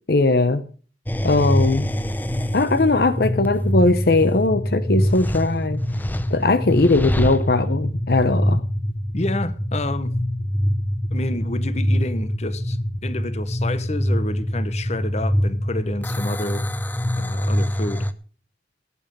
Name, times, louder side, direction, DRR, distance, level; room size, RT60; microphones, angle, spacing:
voice 1, 0.1-0.6 1.2-1.9 2.5-5.8 6.3-8.6, left 3 dB, 60° left, 0.8 m, -19 dB
sound 1, 1.1-18.1, equal, 10° left, 0.7 m, -24 dB
voice 2, 9.1-10.1 11.1-16.7 17.2-18.1, left 2 dB, 40° left, 1.0 m, -29 dB
16.5 x 9.1 x 5.4 m
head